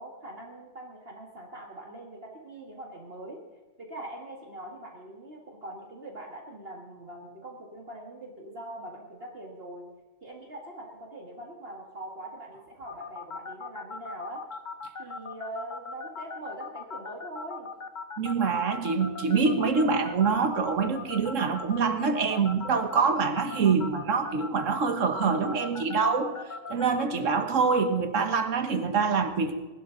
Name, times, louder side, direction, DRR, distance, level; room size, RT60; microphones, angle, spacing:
voice 1, 0.0-3.4 3.8-9.9 10.2-14.4 15.0-17.7, right 1 dB, 50° right, 0 dB, 2.1 m, -42 dB
sound 1, 12.9-27.0, left 4 dB, 40° left, 1.0 m, -38 dB
voice 2, 18.2-26.3 26.7-29.5, right 5 dB, 75° right, 8 dB, 1.7 m, -25 dB
20.0 x 12.0 x 3.9 m, 1.2 s
omnidirectional pair, 1.3 m